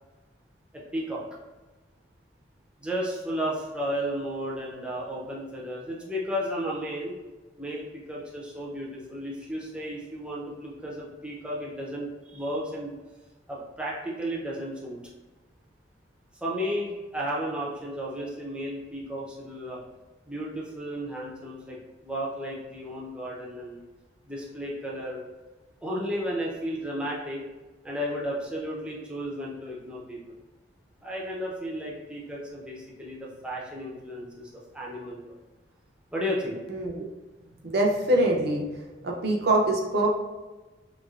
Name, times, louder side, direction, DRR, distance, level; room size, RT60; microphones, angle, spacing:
voice 1, 0.9-1.2 2.8-7.2 7.6-12.9 13.5-15.0 16.4-19.8 20.3-23.8 24.3-25.2 25.8-27.4 27.8-30.2 31.0-35.3 36.1-36.6, equal, 5° right, -5 dB, 0.5 m, -33 dB
voice 2, 36.7-37.0 37.6-38.7 39.0-40.1, right 1 dB, 55° right, 0 dB, 0.5 m, -24 dB
3.1 x 2.7 x 2.4 m, 1.2 s
head